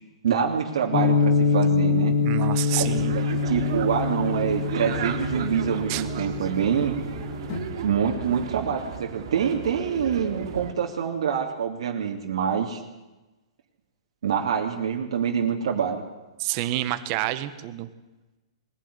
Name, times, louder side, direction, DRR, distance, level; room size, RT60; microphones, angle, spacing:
voice 1, 0.2-2.1 2.7-6.9 7.8-12.8 14.2-16.0 16.5-16.6, right 7 dB, 75° right, 1 dB, 2.9 m, -26 dB
sound 1, 0.9-7.7, left 4 dB, 35° left, 2.7 m, -25 dB
voice 2, 2.2-3.2 5.9-6.0 16.4-17.9, right 15 dB, 35° right, 11 dB, 1.5 m, -28 dB
sound 2, 2.7-10.7, right 7 dB, 55° right, 3.7 m, -35 dB
22.0 x 16.0 x 9.8 m, 1.1 s
hypercardioid pair, 160°, 3 cm